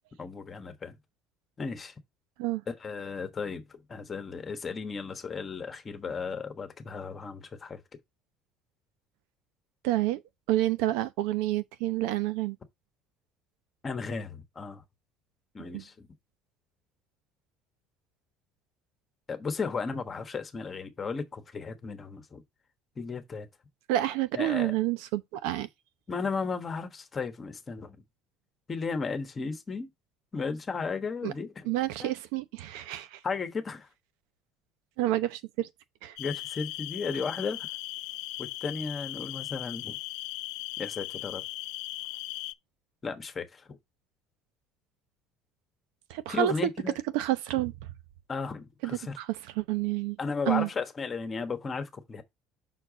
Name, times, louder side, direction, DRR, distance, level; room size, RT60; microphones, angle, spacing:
voice 1, 0.2-1.0 1.6-1.9 2.7-7.8 13.8-14.8 15.5-16.1 19.3-22.4 23.0-23.5 24.4-24.7 26.1-28.0 28.7-29.9 30.3-31.7 32.0-32.1 33.2-33.9 36.2-37.7 38.4-40.0 40.8-41.4 43.0-43.8 46.3-47.0 48.3-49.1 50.2-52.2, left 5 dB, 20° left, 1.2 m, -35 dB
voice 2, 9.8-10.2 10.5-12.6 15.6-15.8 23.9-25.7 31.2-31.3 31.6-33.2 35.0-35.7 36.0-36.2 46.1-46.5 47.1-47.9 48.8-49.3 49.6-50.2 50.5-50.7, right 15 dB, 85° right, 0.8 m, -29 dB
sound 1, 36.2-42.5, left 19 dB, 70° left, 0.4 m, -38 dB
6.0 x 4.6 x 4.9 m
cardioid pair, 165°, 0 cm